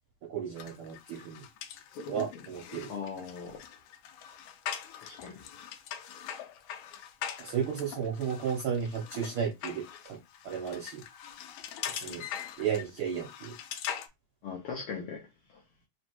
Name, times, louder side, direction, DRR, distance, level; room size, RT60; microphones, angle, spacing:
voice 1, 0.3-1.4 2.1-2.9 7.4-9.8 10.1-10.2 10.4-11.0 11.9-12.2 12.6-13.5, right 7 dB, 70° right, 1.2 m, -33 dB
sound 1, 0.6-14.1, left 9 dB, 85° left, 2.0 m, -42 dB
voice 2, 2.9-3.6 4.9-5.4 14.4-15.2 15.5-15.6, left 6 dB, 70° left, 1.4 m, -39 dB
4.3 x 3.0 x 2.9 m
omnidirectional pair, 3.4 m